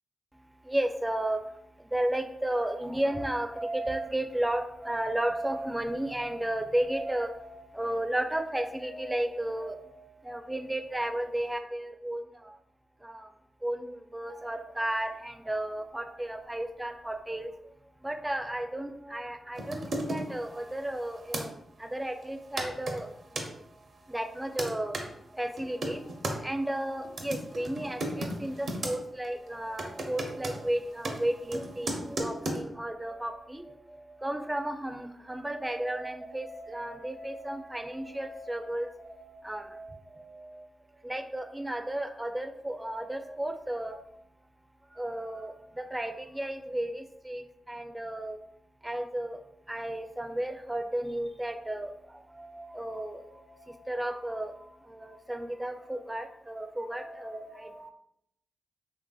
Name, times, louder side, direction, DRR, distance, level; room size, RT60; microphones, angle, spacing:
voice 1, 0.6-1.4 1.9-12.6 13.0-13.3 13.6-17.5 18.0-21.5 21.8-23.1 24.1-24.9 25.3-26.1 26.4-40.7 41.0-44.0 44.9-48.4 48.8-49.4 49.7-57.9, right 1 dB, 15° right, 6 dB, 0.4 m, -33 dB
sound 1, 19.5-21.5 22.2-22.3 22.6-23.5 24.2-25.1 25.6-26.4 27.0-29.0 29.2-29.5 29.8-32.6, right 1 dB, 70° right, 0.5 m, -35 dB
3.1 x 2.5 x 2.3 m, 0.75 s
supercardioid pair, 45°, 0 cm